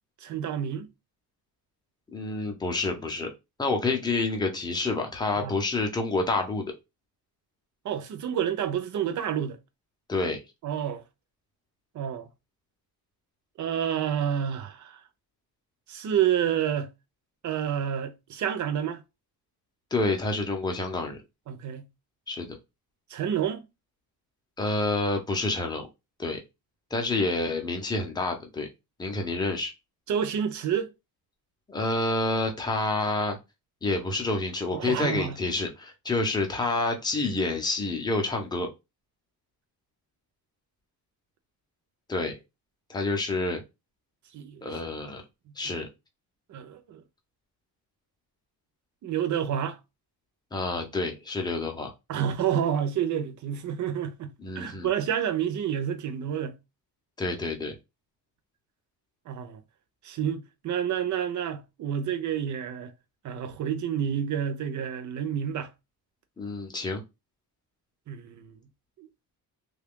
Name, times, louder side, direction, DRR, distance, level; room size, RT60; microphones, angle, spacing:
voice 1, 0.2-0.9 5.4-5.5 7.8-9.6 10.6-11.0 11.9-12.3 13.6-15.0 15.9-16.9 17.4-19.0 21.5-21.9 23.1-23.6 30.1-30.9 34.7-35.4 44.3-44.7 45.6-45.8 46.5-47.0 49.0-49.8 52.1-56.6 59.3-59.6 60.0-62.9 63.2-65.7 68.1-68.6 69.0-69.1, right 9 dB, 50° right, 0.6 m, -29 dB
voice 2, 2.1-3.3 3.6-6.7 10.1-10.4 19.9-21.2 22.3-22.5 24.6-25.9 26.2-26.4 26.9-28.7 29.0-29.7 31.7-33.4 33.8-38.7 42.1-42.4 42.9-43.6 44.6-45.2 45.6-45.9 50.5-51.9 54.4-54.9 57.2-57.7 66.4-67.0, left 2 dB, 10° left, 0.6 m, -28 dB
3.2 x 2.4 x 3.6 m
cardioid pair, 170°, 38 cm